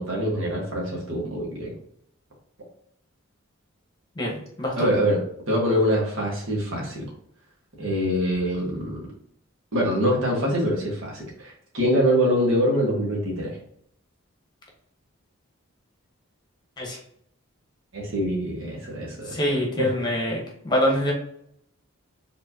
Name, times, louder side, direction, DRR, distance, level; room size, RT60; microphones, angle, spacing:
voice 1, 0.0-1.7 4.8-5.2 5.5-7.0 7.8-9.0 9.7-13.5 17.9-19.3 19.8-19.9, equal, 65° right, -3 dB, 1.6 m, -24 dB
voice 2, 4.1-4.9 16.8-17.0 19.2-21.1, equal, 20° left, -2 dB, 1.2 m, -25 dB
4.7 x 3.7 x 2.8 m, 0.70 s
head